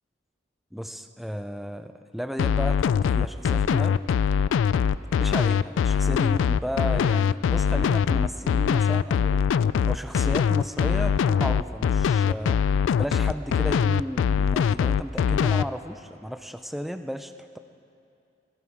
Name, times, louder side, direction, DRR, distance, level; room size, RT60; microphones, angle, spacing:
voice 1, 0.7-4.0 5.2-9.4 9.9-12.6 13.0-17.6, equal, ahead, 8 dB, 0.4 m, -34 dB
sound 1, 2.4-15.6, left 7 dB, 85° left, 0.3 m, -22 dB
17.5 x 15.5 x 4.6 m, 2.6 s
head